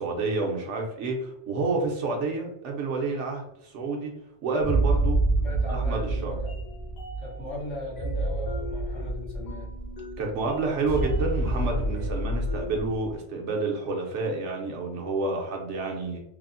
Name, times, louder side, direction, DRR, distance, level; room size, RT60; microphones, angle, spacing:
voice 1, 0.0-4.1 4.4-5.2 5.7-6.4 10.2-16.2, right 3 dB, 70° right, 1 dB, 0.9 m, -29 dB
sound 1, 4.6-13.1, right 2 dB, 60° left, 1.2 m, -28 dB
voice 2, 5.4-6.7 7.2-9.7, left 1 dB, 90° left, -5 dB, 1.4 m, -38 dB
3.4 x 2.0 x 2.5 m, 0.80 s
omnidirectional pair, 1.3 m